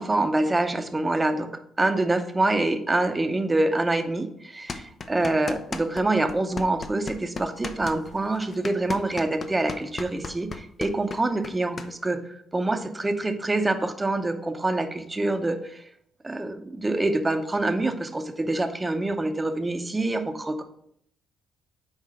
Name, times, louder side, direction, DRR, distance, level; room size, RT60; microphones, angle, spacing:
voice 1, 0.0-1.5 1.8-15.9 16.2-20.6, right 2 dB, 20° right, 7 dB, 0.8 m, -26 dB
sound 1, 4.7-6.0 6.3-11.9, left 4 dB, 40° left, 0.6 m, -35 dB
5.7 x 4.4 x 5.0 m, 0.71 s
cardioid pair, 90°, 0 cm